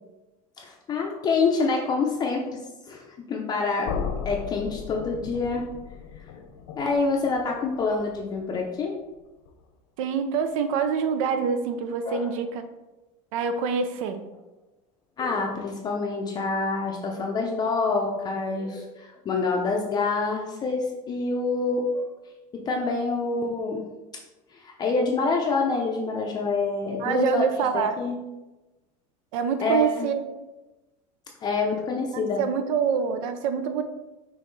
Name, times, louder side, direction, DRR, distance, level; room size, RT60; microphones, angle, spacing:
voice 1, 0.6-3.9 4.2-5.7 6.8-9.0 12.1-12.3 15.2-22.1 22.7-23.8 24.5-27.4 27.7-28.2 29.6-30.1 31.4-32.4, left 3 dB, 25° left, 0 dB, 0.5 m, -26 dB
sound 1, 3.8-9.7, left 6 dB, 70° left, 0.7 m, -37 dB
voice 2, 10.0-12.6 13.3-14.2 27.0-28.0 29.3-30.2 32.1-33.8, right 6 dB, 80° right, 8 dB, 0.6 m, -26 dB
5.4 x 3.1 x 3.1 m, 1.1 s
supercardioid pair, 145°, 17 cm